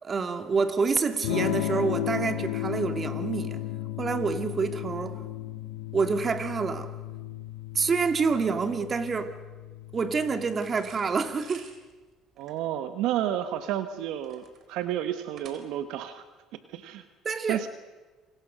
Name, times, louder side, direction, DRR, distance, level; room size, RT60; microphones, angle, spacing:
voice 1, 0.0-3.7 4.0-5.2 5.9-6.9 7.7-9.4 9.9-11.7 17.2-17.6, right 5 dB, 35° right, 2.5 m, -27 dB
Electric guitar / Strum, 1.2-11.0, left 13 dB, 85° left, 2.0 m, -34 dB
sound 1, 10.5-16.0, right 6 dB, 55° right, 4.2 m, -52 dB
voice 2, 12.4-16.2 16.5-17.0 17.5-17.7, right 11 dB, 75° right, 1.4 m, -31 dB
27.5 x 25.5 x 6.4 m
supercardioid pair, 80°, 0 cm